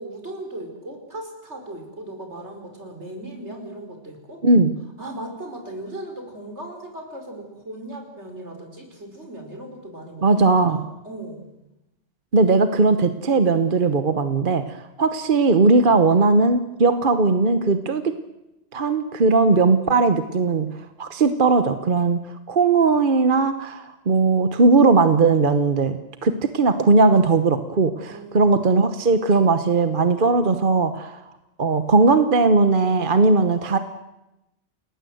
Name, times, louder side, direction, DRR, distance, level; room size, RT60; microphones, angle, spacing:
voice 1, 0.0-4.4 5.0-11.5 28.1-28.6, right 1 dB, 85° right, 4 dB, 5.1 m, -37 dB
voice 2, 10.2-10.8 12.3-18.0 18.7-20.7 21.0-22.2 22.5-31.1 31.6-33.8, right 3 dB, 50° right, 9 dB, 1.2 m, -18 dB
29.0 x 20.0 x 7.9 m, 0.96 s
omnidirectional pair, 1.1 m